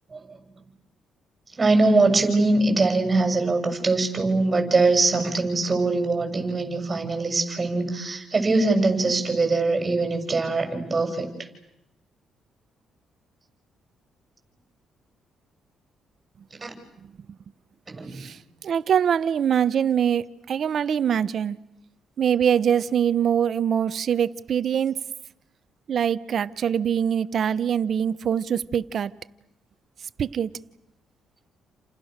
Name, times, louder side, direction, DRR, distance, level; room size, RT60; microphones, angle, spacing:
voice 1, 1.6-11.3 16.6-16.7 17.9-18.3, right 3 dB, 25° right, 7.0 m, -22 dB
voice 2, 18.1-21.6 22.2-25.0 25.9-29.1 30.2-30.5, right 8 dB, 55° right, 1.0 m, -23 dB
29.5 x 28.0 x 6.7 m
cardioid pair, 90°, 0 cm